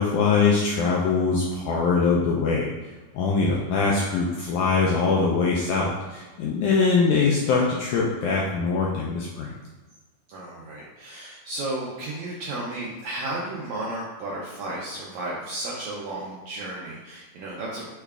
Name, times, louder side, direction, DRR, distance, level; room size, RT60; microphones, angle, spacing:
voice 1, 0.0-2.7 3.1-9.5, left 4 dB, 85° left, -3 dB, 1.8 m, -22 dB
voice 2, 10.3-17.9, right 2 dB, 80° right, -5 dB, 1.7 m, -33 dB
6.4 x 2.4 x 3.3 m, 1.3 s
omnidirectional pair, 4.0 m